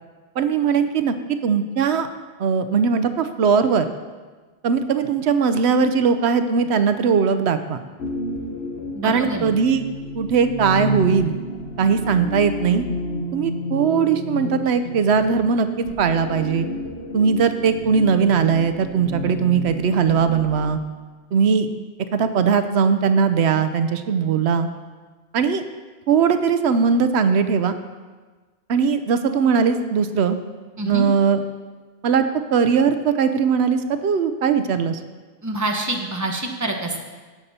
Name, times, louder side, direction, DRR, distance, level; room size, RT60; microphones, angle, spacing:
voice 1, 0.4-2.1 2.4-3.9 4.6-7.8 9.0-9.8 10.1-11.3 11.8-12.8 13.3-16.7 17.1-20.8 21.3-21.7 22.1-24.7 25.3-25.6 26.1-27.7 28.7-30.4 30.9-31.4 32.0-32.3 32.5-35.0, right 6 dB, 90° right, 10 dB, 1.0 m, -19 dB
sound 1, 8.0-20.7, left 1 dB, 85° left, 1.3 m, -31 dB
voice 2, 8.9-9.5 30.8-31.1 35.4-37.0, right 2 dB, 15° right, 2 dB, 1.1 m, -26 dB
17.0 x 6.7 x 4.3 m, 1.4 s
omnidirectional pair, 1.1 m